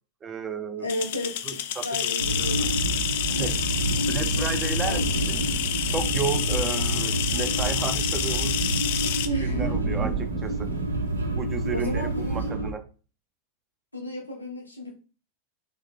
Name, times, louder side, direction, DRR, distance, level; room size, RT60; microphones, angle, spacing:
voice 1, 0.2-1.0 1.4-2.7 3.4-3.5 3.9-5.4 5.9-8.6 9.4-10.7 11.4-12.8, right 5 dB, 20° right, 8 dB, 0.6 m, -33 dB
voice 2, 0.8-2.8 3.2-3.5 4.1-4.5 4.8-5.1 9.2-9.8 11.7-12.5 13.9-14.9, equal, 85° left, -1 dB, 1.1 m, -34 dB
sound 1, 0.9-9.3, left 11 dB, 55° left, 0.4 m, -29 dB
sound 2, 2.2-12.7, right 2 dB, 75° right, 0.5 m, -28 dB
Thunder / Rain, 2.8-12.5, right 5 dB, 55° right, 1.3 m, -38 dB
3.1 x 3.1 x 3.7 m, 0.36 s
figure-of-eight pair, 90°, 0 cm